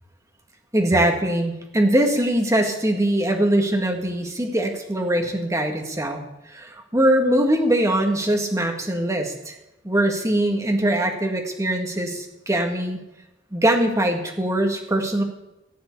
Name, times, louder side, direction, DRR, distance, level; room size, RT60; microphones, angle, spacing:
voice 1, 0.7-6.2 6.5-9.6 9.8-13.0 13.5-15.2, right 1 dB, 15° right, 3 dB, 1.8 m, -22 dB
15.0 x 7.9 x 8.4 m, 0.94 s
head